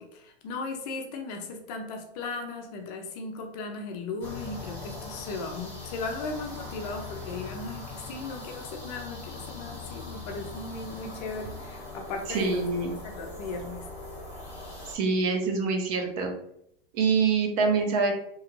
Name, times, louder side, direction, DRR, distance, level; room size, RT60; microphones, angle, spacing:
voice 1, 0.0-12.7 13.0-13.9, left 3 dB, 40° left, 3 dB, 0.5 m, -37 dB
sound 1, 4.2-15.0, left 3 dB, 5° left, 1.0 m, -41 dB
voice 2, 12.3-12.9 14.9-16.3 16.9-18.1, right 4 dB, 35° right, 3 dB, 0.5 m, -25 dB
2.9 x 2.3 x 2.9 m, 0.75 s
supercardioid pair, 145°, 32 cm